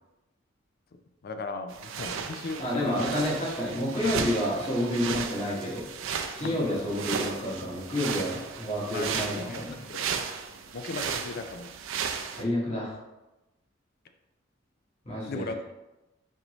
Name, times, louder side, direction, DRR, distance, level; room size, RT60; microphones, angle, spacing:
voice 1, 0.9-3.1 6.4-6.7 8.9-10.0 10.7-11.7 15.3-15.6, left 3 dB, 50° left, 7 dB, 0.4 m, -37 dB
sound 1, 1.7-12.4, right 6 dB, 85° right, 0.4 m, -35 dB
voice 2, 2.6-5.9 6.3-9.8 12.3-13.0 15.0-15.4, left 1 dB, 35° left, -6 dB, 1.2 m, -29 dB
4.5 x 2.6 x 3.0 m, 1.0 s
head